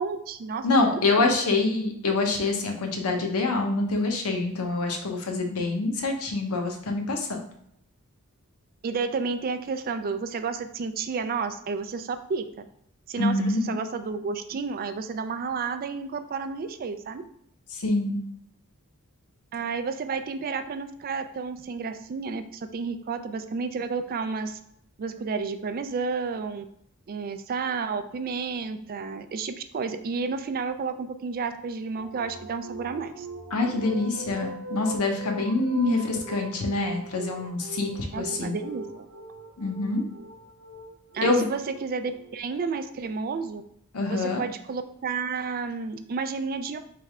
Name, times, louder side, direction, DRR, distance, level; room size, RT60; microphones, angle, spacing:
voice 1, 0.0-1.6 8.8-12.7 13.1-17.2 19.5-24.6 25.0-26.6 27.1-33.3 38.1-39.1 41.1-43.6 44.1-46.8, right 5 dB, 40° right, 9 dB, 0.3 m, -31 dB
voice 2, 0.6-7.4 13.2-13.7 17.7-18.2 33.5-38.6 39.6-40.0 41.2-41.5 43.9-44.4, left 3 dB, 80° left, 2 dB, 0.9 m, -26 dB
sound 1, 32.0-42.6, right 2 dB, 70° right, 0.8 m, -40 dB
3.4 x 3.2 x 4.7 m, 0.72 s
head